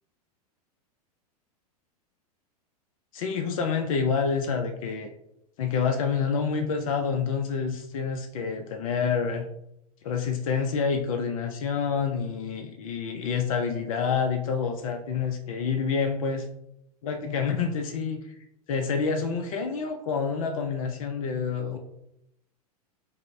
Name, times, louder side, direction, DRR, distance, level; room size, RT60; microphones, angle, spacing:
voice 1, 3.1-5.1 5.6-9.5 10.0-16.5 17.0-18.2 18.7-21.8, left 6 dB, 60° left, 6 dB, 0.5 m, -28 dB
5.2 x 2.1 x 2.6 m, 0.79 s
figure-of-eight pair, 95°, 20 cm